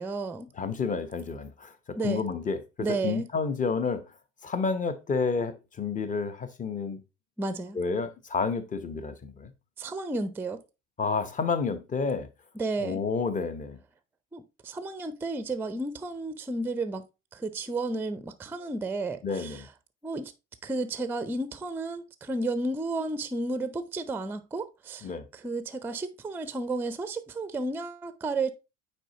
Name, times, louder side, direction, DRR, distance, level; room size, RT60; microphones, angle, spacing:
voice 1, 0.0-0.5 1.9-2.2 2.8-3.3 7.4-7.8 9.8-10.6 12.5-13.0 14.3-17.0 17.3-19.7 20.0-20.3 20.6-28.5, right 2 dB, 5° right, 0.5 m, -32 dB
voice 2, 0.6-1.7 2.0-2.6 2.9-4.0 4.4-7.0 7.7-9.5 11.0-12.3 12.8-13.8 19.2-19.7 25.0-25.2, left 5 dB, 20° left, 0.9 m, -30 dB
9.0 x 4.3 x 2.9 m
figure-of-eight pair, 70°, 36 cm